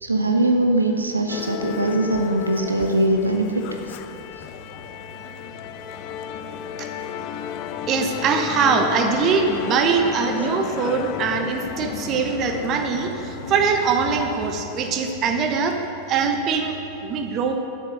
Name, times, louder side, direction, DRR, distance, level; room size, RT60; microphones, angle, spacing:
voice 1, 0.0-4.0, right 1 dB, 80° right, 3 dB, 0.8 m, -21 dB
Musical instrument, 1.3-16.0, left 10 dB, 45° left, 0.5 m, -34 dB
voice 2, 7.9-15.8 16.1-17.6, right 5 dB, 35° right, 5 dB, 1.0 m, -22 dB
11.5 x 6.6 x 6.6 m, 2.8 s
figure-of-eight pair, 90°, 0 cm